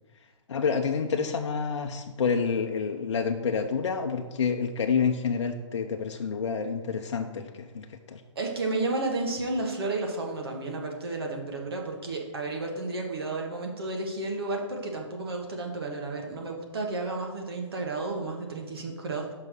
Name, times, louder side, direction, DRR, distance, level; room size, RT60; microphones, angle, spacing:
voice 1, 0.5-8.2, left 5 dB, 65° left, 3 dB, 0.7 m, -28 dB
voice 2, 8.3-19.3, right 2 dB, 50° right, 1 dB, 1.5 m, -32 dB
5.6 x 5.4 x 6.4 m, 1.3 s
hypercardioid pair, 175°, 16 cm